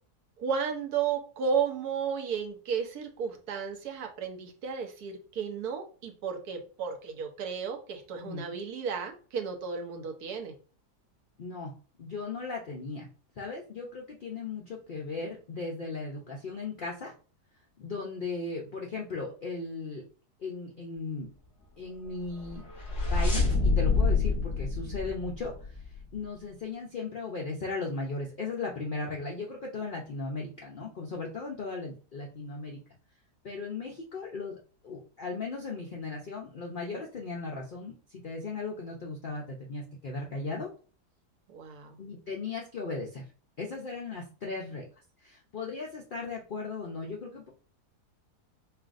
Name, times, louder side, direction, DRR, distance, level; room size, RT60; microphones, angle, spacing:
voice 1, 0.4-10.5 41.5-42.0, right 6 dB, 70° right, 4 dB, 1.2 m, -33 dB
voice 2, 11.4-11.7 12.0-13.1 13.4-17.1 17.8-20.0 20.4-21.3 21.8-22.7 23.1-32.8 33.4-34.6 34.8-40.7 42.0-43.2 43.6-44.8 45.2-47.5, left 3 dB, 65° left, -2 dB, 0.5 m, -37 dB
sound 1, 22.4-26.0, left 3 dB, 45° left, 2.2 m, -27 dB
5.6 x 2.4 x 2.5 m, 0.39 s
omnidirectional pair, 1.7 m